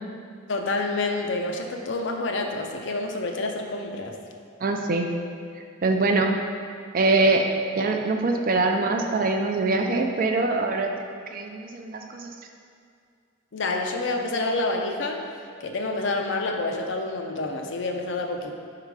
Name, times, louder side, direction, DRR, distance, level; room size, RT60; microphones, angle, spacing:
voice 1, 0.5-4.2 13.5-15.2 15.6-18.5, left 2 dB, 60° left, 3 dB, 0.6 m, -28 dB
voice 2, 4.6-5.1 5.8-6.3 6.9-7.5 7.7-12.3, right 3 dB, 45° right, 3 dB, 0.4 m, -23 dB
5.6 x 3.8 x 4.7 m, 2.4 s
head